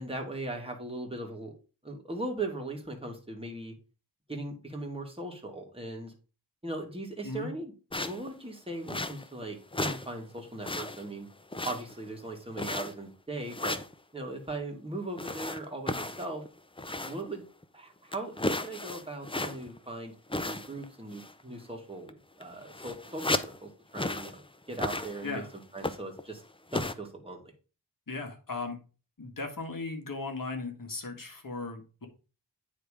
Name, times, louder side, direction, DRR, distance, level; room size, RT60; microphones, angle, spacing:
voice 1, 0.0-1.5 1.8-3.7 4.3-6.1 6.6-7.7 8.0-11.3 11.6-13.8 14.1-16.4 17.0-17.4 17.7-20.1 20.4-25.4 25.7-26.4 26.7-27.4, right 2 dB, 15° right, 1 dB, 2.1 m, -39 dB
sound 1, 7.9-8.3 8.9-9.4 9.7-10.1 10.4-11.1 11.5-12.1 12.6-13.1 13.5-13.9 15.2-17.3 17.6-17.7 18.1-19.8 20.3-20.9 21.1-21.4 22.1-22.2 22.4-23.6 23.9-24.4 24.7-25.4 25.8-26.2 26.7-26.9, left 2 dB, 15° left, 0.5 m, -34 dB
voice 2, 28.1-28.8 29.2-32.1, left 3 dB, 50° left, 4 dB, 1.7 m, -37 dB
9.3 x 3.5 x 4.9 m, 0.34 s
wide cardioid pair, 70°, 43 cm